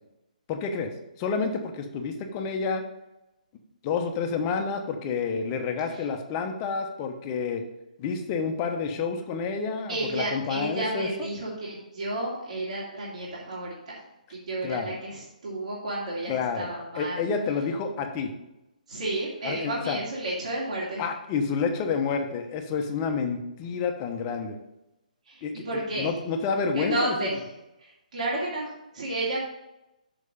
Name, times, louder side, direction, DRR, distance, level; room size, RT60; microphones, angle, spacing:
voice 1, 0.5-0.9 1.2-2.8 3.8-7.6 8.0-11.1 14.6-14.9 16.3-16.7 16.9-18.3 19.4-20.0 21.0-24.6 25.4-25.6 26.0-27.2, left 5 dB, 25° left, 5 dB, 1.1 m, -29 dB
voice 2, 9.9-14.0 14.3-17.3 18.9-21.0 25.3-26.1 26.7-27.4 27.8-29.4, right 1 dB, 55° right, -5 dB, 2.3 m, -32 dB
6.5 x 6.0 x 5.3 m, 0.92 s
figure-of-eight pair, 135°, 5 cm